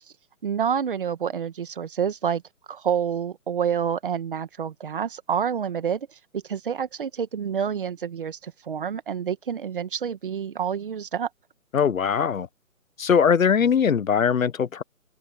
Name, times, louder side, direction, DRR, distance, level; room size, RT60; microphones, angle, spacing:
voice 1, 0.4-2.4 2.7-6.1 6.3-11.3, right 7 dB, 40° right, 1.7 m, -28 dB
voice 2, 11.7-12.5 13.0-14.8, left 7 dB, 70° left, 1.0 m, -21 dB
hypercardioid pair, 165°, 42 cm